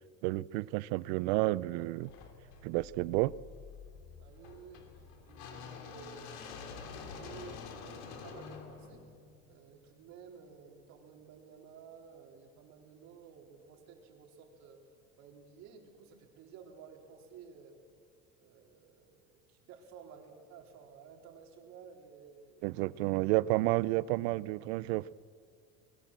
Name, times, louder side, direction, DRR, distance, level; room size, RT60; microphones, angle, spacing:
voice 1, 0.2-2.1 2.6-3.3 22.6-25.1, right 19 dB, 80° right, 20 dB, 0.7 m, -31 dB
sound 1, 2.0-10.0, left 5 dB, 85° left, 3.4 m, -48 dB
voice 2, 4.2-9.0 9.5-14.8 15.2-17.8 18.4-22.8, right 6 dB, 55° right, 2 dB, 4.0 m, -54 dB
23.5 x 21.5 x 7.6 m, 2.2 s
cardioid pair, 135°, 32 cm